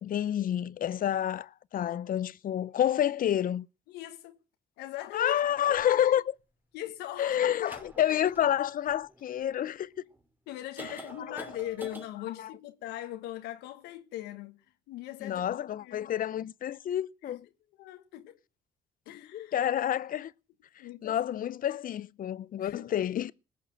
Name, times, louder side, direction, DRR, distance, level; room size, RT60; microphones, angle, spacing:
voice 1, 0.0-3.7 5.1-6.4 7.2-9.9 10.8-11.0 11.3-11.4 12.4-12.5 15.2-17.5 19.3-20.3 21.0-23.3, left 10 dB, 55° left, 0.7 m, -29 dB
voice 2, 3.9-4.4 4.8-5.4 5.7-5.8 6.7-7.6 10.5-15.5 15.8-16.1 17.2-17.4 17.8-18.4 19.0-19.5 20.8-21.2 22.6-22.8, left 14 dB, 80° left, 1.3 m, -40 dB
sound 1, 5.7-5.8 7.5-9.5 10.1-10.2 10.8-12.1, right 2 dB, 10° right, 2.7 m, -47 dB
19.5 x 6.6 x 7.6 m
supercardioid pair, 65°, 17 cm